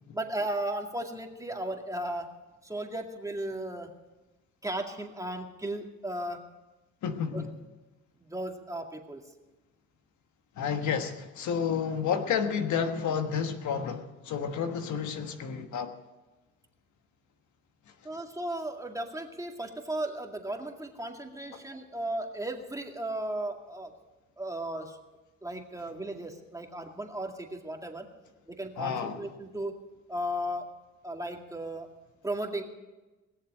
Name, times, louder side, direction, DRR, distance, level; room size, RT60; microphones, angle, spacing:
voice 1, 0.1-2.3 2.6-3.9 4.6-6.4 7.3-7.4 8.2-9.2 18.0-23.9 24.4-25.0 25.4-28.1 28.5-29.7 30.1-30.6 31.0-31.9 32.2-32.6, right 1 dB, 10° right, 2 dB, 2.1 m, -35 dB
voice 2, 7.0-7.5 10.6-15.9 28.8-29.2, left 7 dB, 70° left, 7 dB, 1.4 m, -30 dB
20.5 x 7.3 x 8.8 m, 1.1 s
cardioid pair, 90°, 30 cm